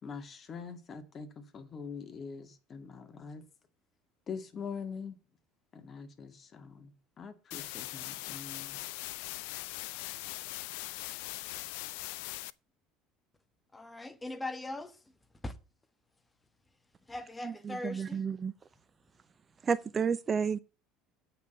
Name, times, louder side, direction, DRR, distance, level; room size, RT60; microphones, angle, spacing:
voice 1, 0.0-3.4 4.3-5.2 5.7-8.8, left 5 dB, 40° left, 2.0 m, -44 dB
sound 1, 7.5-12.5, left 19 dB, 70° left, 0.4 m, -40 dB
voice 2, 13.7-15.0 15.4-15.5 17.1-18.2, left 2 dB, 15° left, 1.5 m, -40 dB
voice 3, 17.4-18.5 19.6-20.6, right 6 dB, 30° right, 0.5 m, -31 dB
8.3 x 6.0 x 8.1 m
hypercardioid pair, 65°, 0 cm